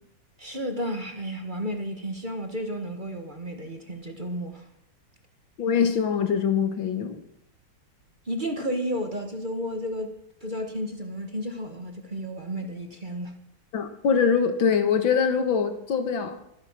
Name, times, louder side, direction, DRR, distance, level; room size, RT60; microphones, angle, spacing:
voice 1, 0.4-4.6 8.2-13.4, equal, 25° right, 1.7 m, -32 dB
voice 2, 5.6-7.2 13.7-16.4, left 6 dB, 80° left, 2.3 m, -23 dB
25.0 x 9.9 x 5.8 m
omnidirectional pair, 2.2 m